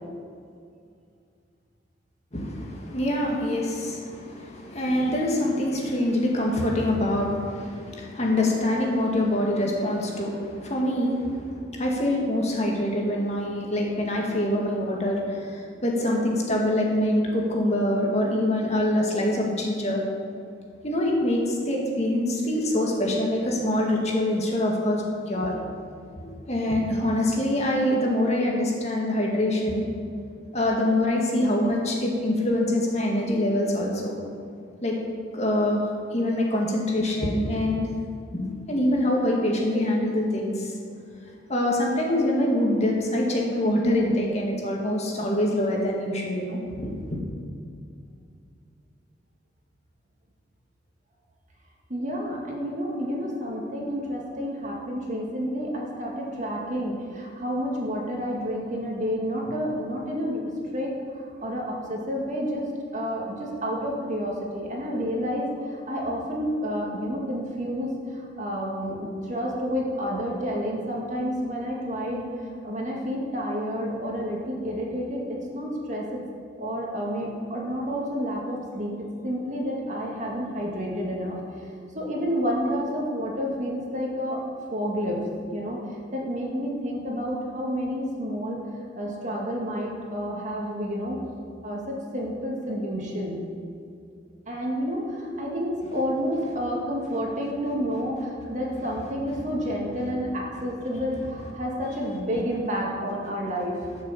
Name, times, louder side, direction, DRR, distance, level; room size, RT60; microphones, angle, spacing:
voice 1, 2.3-20.0 20.8-25.6 26.5-29.9 30.5-34.1 34.8-35.0 35.3-35.8 36.1-37.9 38.3-40.7 41.5-47.2, left 1 dB, 35° left, -2 dB, 2.1 m, -25 dB
voice 2, 51.9-76.2 76.6-81.7 81.9-84.4 84.7-85.2 85.5-85.8 86.1-88.6 89.0-91.2 91.6-93.4 94.5-103.8, equal, 40° right, -2 dB, 2.1 m, -30 dB
13.0 x 6.7 x 7.4 m, 2.4 s
head